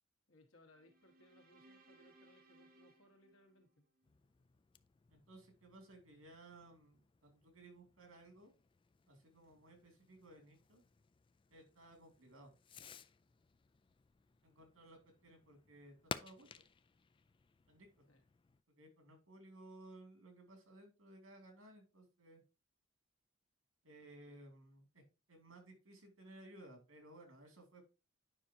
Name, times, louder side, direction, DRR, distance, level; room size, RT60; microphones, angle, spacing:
voice 1, 0.3-3.9 18.1-18.2, left 1 dB, 90° left, 1.9 m, -67 dB
sound 1, 0.7-4.1, right 2 dB, 50° right, 1.2 m, -66 dB
Fireworks, 4.0-18.6, left 5 dB, 25° left, 0.3 m, -56 dB
voice 2, 5.1-8.5 9.1-10.8 11.5-12.5 14.4-16.5 17.7-17.9 18.8-22.4 23.8-25.0 25.3-27.8, right 1 dB, 90° right, 2.7 m, -59 dB
9.8 x 5.4 x 2.9 m
head